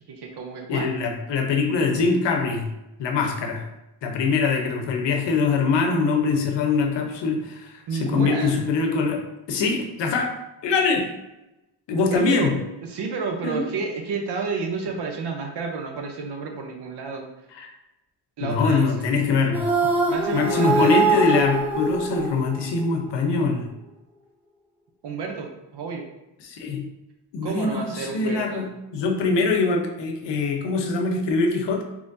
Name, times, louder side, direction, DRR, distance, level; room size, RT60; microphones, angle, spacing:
voice 1, 0.1-0.9 7.9-8.6 12.1-12.5 12.8-17.3 18.4-19.1 20.1-21.5 25.0-26.1 27.4-28.7, right 4 dB, 70° right, 3 dB, 0.8 m, -30 dB
voice 2, 0.7-2.7 3.0-3.7 4.0-7.7 8.0-9.2 9.5-10.3 10.6-11.1 11.9-12.5 13.4-13.7 17.5-17.7 18.4-19.7 20.3-23.7 26.4-26.9 27.3-31.8, left 4 dB, 80° left, 4 dB, 0.7 m, -23 dB
sound 1, 19.5-22.9, right 3 dB, 5° right, 0.3 m, -23 dB
3.8 x 3.0 x 2.6 m, 0.96 s
wide cardioid pair, 140°, 42 cm